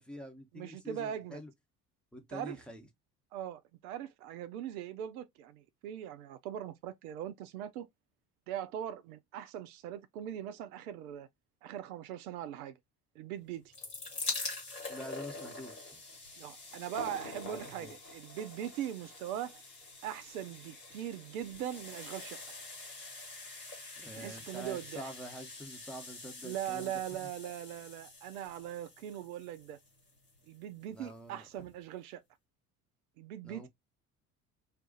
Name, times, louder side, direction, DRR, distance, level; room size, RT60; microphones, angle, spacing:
voice 1, 0.0-1.5 2.1-2.9 14.9-15.9 17.4-17.9 24.0-26.9 30.9-31.7 33.4-33.7, equal, ahead, 0.9 m, -46 dB
voice 2, 0.5-1.4 2.3-2.6 3.3-7.9 8.5-11.3 11.6-12.8 13.2-13.7 16.4-19.6 20.0-22.4 24.1-25.1 26.4-29.8 30.5-32.2 33.2-33.7, right 10 dB, 65° right, 0.6 m, -41 dB
sound 1, 13.5-30.5 31.3-31.4 31.6-31.7, left 3 dB, 90° left, 1.1 m, -45 dB
2.5 x 2.4 x 3.8 m
figure-of-eight pair, 60°, 46 cm